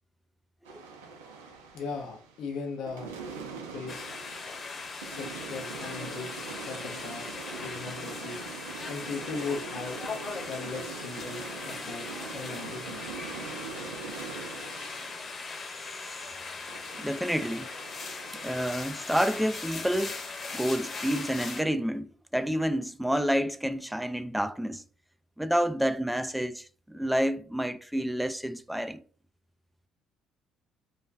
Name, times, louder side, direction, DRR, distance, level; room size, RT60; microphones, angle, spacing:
sound 1, 0.7-2.5 2.9-16.3 16.7-18.7, right 5 dB, 85° right, 0.4 m, -43 dB
voice 1, 1.7-3.1 3.7-4.1 5.0-8.4 8.9-10.0 10.5-12.0 12.3-13.0, left 4 dB, 65° left, 0.5 m, -38 dB
sound 2, 3.9-21.6, left 4 dB, 45° left, 0.8 m, -39 dB
voice 2, 15.9-16.3 17.0-17.7 18.4-20.2 20.5-24.8 25.4-29.0, equal, 5° right, 0.3 m, -29 dB
2.4 x 2.2 x 3.2 m
hypercardioid pair, 50°, 0 cm